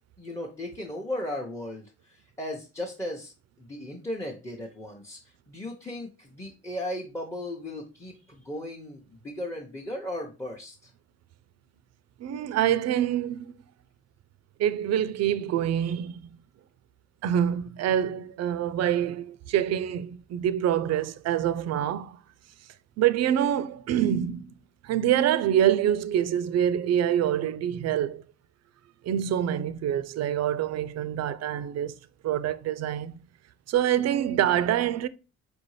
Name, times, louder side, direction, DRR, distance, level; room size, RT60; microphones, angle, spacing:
voice 1, 0.2-3.3 3.6-10.9, left 1 dB, 10° left, 0.8 m, -36 dB
voice 2, 12.2-13.5 14.6-16.2 17.2-22.2 23.0-24.5 24.8-28.2 29.0-31.9 32.2-33.2 33.7-35.1, right 10 dB, 60° right, 0.4 m, -26 dB
4.6 x 2.6 x 3.1 m
cardioid pair, 90°, 30 cm